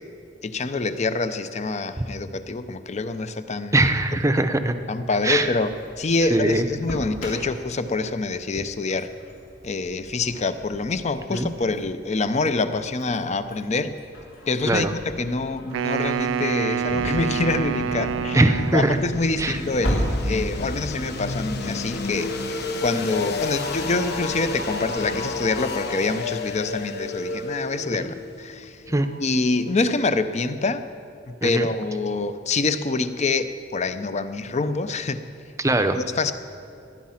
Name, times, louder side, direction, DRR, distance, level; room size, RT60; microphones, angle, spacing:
voice 1, 0.4-3.8 4.9-9.1 9.6-14.0 14.5-18.4 18.7-28.8 29.2-30.9 31.3-35.2 36.0-36.3, left 3 dB, 35° left, 11 dB, 0.7 m, -26 dB
voice 2, 3.7-4.7 5.2-5.5 6.3-6.7 11.3-11.5 14.7-14.9 18.3-19.0 19.4-19.6 27.9-28.1 28.9-29.1 31.4-31.7 35.6-36.0, right 2 dB, 15° right, 9 dB, 0.7 m, -21 dB
Engine starting, 5.0-22.0, equal, 80° left, 3.8 m, -36 dB
Wind instrument woodwind instrument, 15.7-19.2, right 7 dB, 75° right, 0.3 m, -27 dB
sound 1, 16.9-29.7, left 3 dB, 60° left, 1.2 m, -32 dB
19.0 x 10.5 x 5.8 m, 2.5 s
head